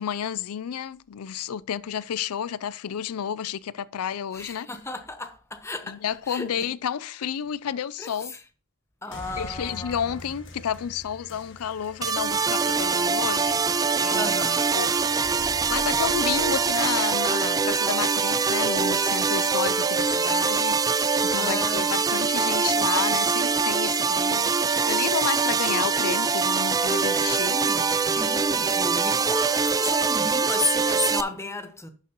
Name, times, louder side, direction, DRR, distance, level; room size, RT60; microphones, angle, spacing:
voice 1, 0.0-4.7 5.9-8.3 9.4-13.6 14.0-14.4 14.7-15.0 15.7-20.8 21.2-27.6 28.1-28.3, left 8 dB, 90° left, 0.4 m, -31 dB
voice 2, 4.3-6.7 8.0-8.3 9.0-10.0 14.2-14.6 21.3-21.8 27.4-31.9, left 3 dB, 15° left, 0.9 m, -33 dB
sound 1, 9.1-18.1, left 1 dB, 60° left, 1.5 m, -44 dB
sound 2, 12.0-31.2, right 5 dB, 15° right, 0.3 m, -23 dB
11.0 x 6.5 x 2.9 m
head